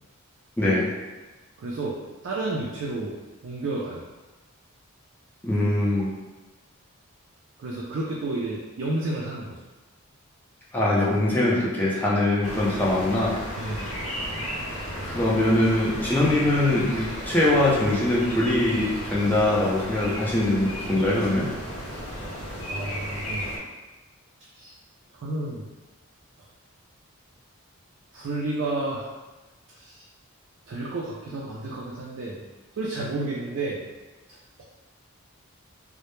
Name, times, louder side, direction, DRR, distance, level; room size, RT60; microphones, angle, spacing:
voice 1, 0.6-0.9 5.4-6.1 10.7-13.3 15.0-21.5, left 1 dB, 10° left, -6 dB, 0.4 m, -22 dB
voice 2, 1.6-3.1 3.4-4.0 7.6-9.6 13.6-14.0 15.0-15.2 21.9-22.0 22.7-23.5 24.6-24.8 25.1-25.6 28.1-29.1 29.8-30.0 30.7-32.4 32.8-33.8, right 2 dB, 60° right, -5 dB, 0.3 m, -31 dB
sound 1, 12.4-23.6, equal, 90° left, 0.8 m, -34 dB
2.0 x 2.0 x 3.0 m, 1.2 s
head